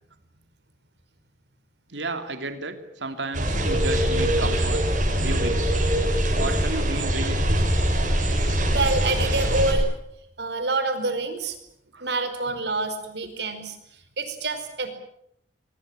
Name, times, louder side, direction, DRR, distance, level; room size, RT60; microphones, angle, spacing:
voice 1, 1.9-4.8 5.2-5.7 6.4-7.7 11.9-12.1, right 2 dB, 85° right, 8 dB, 2.8 m, -33 dB
sound 1, 3.3-9.7, equal, 45° right, 7.0 m, -23 dB
voice 2, 8.7-9.9 10.4-11.6 12.0-13.8 14.2-14.9, right 3 dB, 70° right, 9 dB, 5.0 m, -27 dB
23.5 x 22.5 x 9.0 m, 0.75 s
head